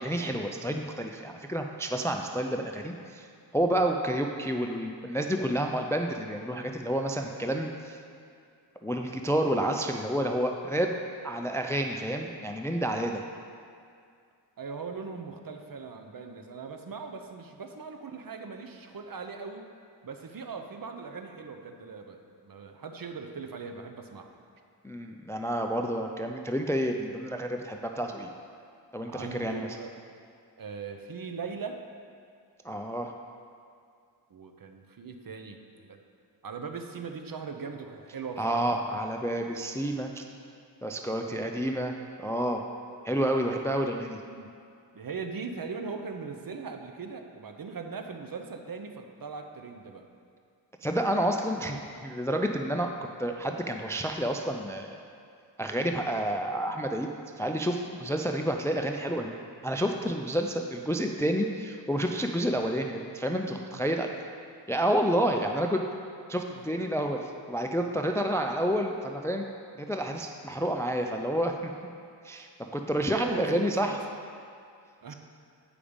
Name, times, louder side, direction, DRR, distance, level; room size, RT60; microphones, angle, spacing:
voice 1, 0.0-3.3 3.5-8.0 8.8-11.0 11.2-13.2 24.8-28.3 28.9-29.8 32.6-33.1 38.4-40.2 40.8-41.9 42.2-42.7 43.0-44.2 50.8-52.9 53.2-55.0 55.6-59.4 59.6-64.1 64.7-65.8 66.3-69.4 69.8-71.7 72.2-74.0, equal, 5° left, 4 dB, 0.3 m, -29 dB
voice 2, 14.6-19.6 20.0-24.3 29.1-29.9 30.6-31.9 34.3-36.0 36.4-38.8 41.0-41.7 42.9-43.1 44.3-44.5 44.9-50.1 63.7-63.8 66.3-66.6 72.8-74.0 75.0-75.1, right 5 dB, 50° right, 5 dB, 0.7 m, -40 dB
8.6 x 5.0 x 5.1 m, 2.3 s
wide cardioid pair, 80°, 45 cm